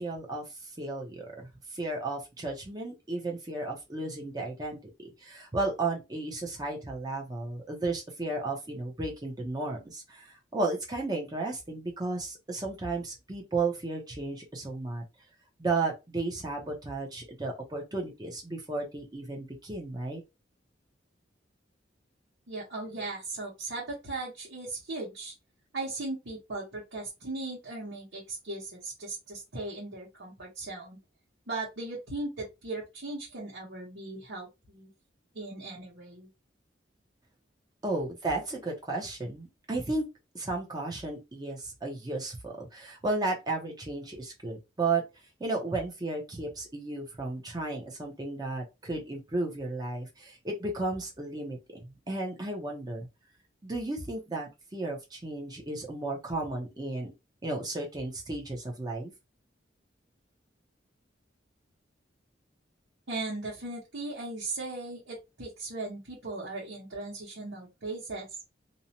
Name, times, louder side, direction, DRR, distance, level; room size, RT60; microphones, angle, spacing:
voice 1, 0.0-15.0 15.6-20.2 37.8-40.1 40.3-45.0 45.4-53.1 53.6-57.1 57.4-59.1, right 2 dB, 20° right, 0.6 m, -34 dB
voice 2, 22.5-25.3 25.7-31.0 31.5-34.9 35.3-36.3 63.1-68.3, right 2 dB, 80° right, 1.1 m, -38 dB
2.6 x 2.1 x 2.8 m
head